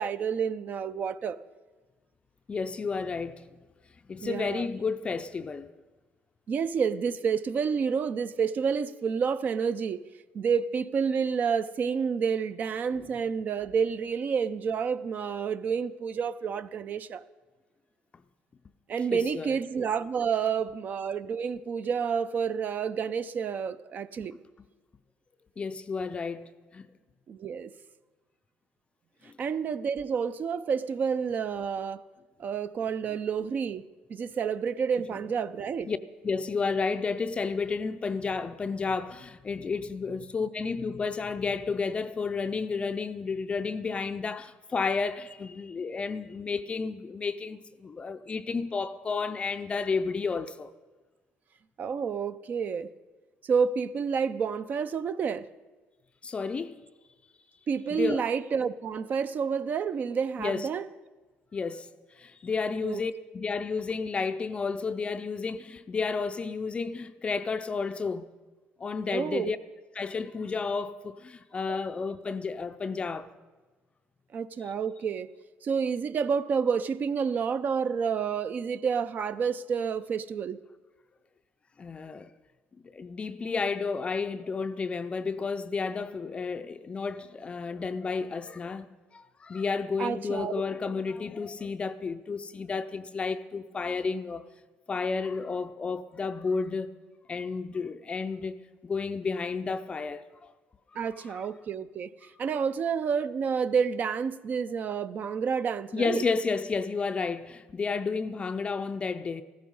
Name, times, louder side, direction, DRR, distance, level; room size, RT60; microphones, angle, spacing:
voice 1, 0.0-1.4 4.2-4.7 6.5-10.0 10.3-17.2 18.9-24.4 27.3-27.7 29.4-32.0 32.4-33.8 34.1-35.9 51.8-52.9 53.4-55.5 57.7-60.9 62.8-63.0 69.1-69.5 71.7-71.8 74.3-75.3 75.6-80.6 90.0-90.5 101.0-106.2, right 6 dB, 45° right, 0.5 m, -29 dB
voice 2, 2.5-3.5 4.1-5.7 19.1-19.6 25.6-26.9 29.2-29.3 33.1-33.2 35.9-36.0 36.2-50.7 56.2-56.8 57.9-58.2 60.4-60.7 61.5-61.9 62.2-68.3 68.8-69.6 70.0-73.3 81.8-82.3 82.8-94.4 94.9-96.9 97.3-100.5 101.3-101.4 105.9-109.4, left 4 dB, 25° left, 0.5 m, -31 dB
15.0 x 14.0 x 5.4 m
cardioid pair, 125°, 4 cm